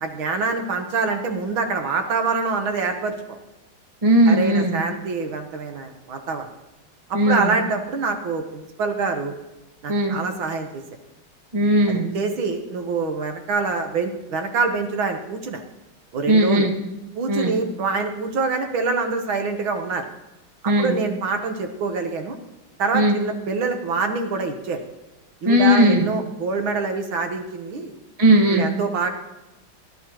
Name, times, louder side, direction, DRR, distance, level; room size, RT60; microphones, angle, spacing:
voice 1, 0.0-3.4 4.3-6.5 7.1-9.3 9.8-10.8 11.9-15.6 16.1-16.7 17.1-20.1 20.6-22.4 22.8-24.8 25.4-27.9 28.5-29.1, right 4 dB, 75° right, 5 dB, 1.9 m, -25 dB
voice 2, 4.0-4.8 7.1-7.5 9.9-10.2 11.5-12.1 16.3-16.7 17.3-17.6 20.6-21.0 22.9-23.2 25.4-26.1 28.2-28.7, right 1 dB, 20° right, 1 dB, 1.4 m, -17 dB
18.5 x 12.0 x 3.0 m, 1.0 s
omnidirectional pair, 2.3 m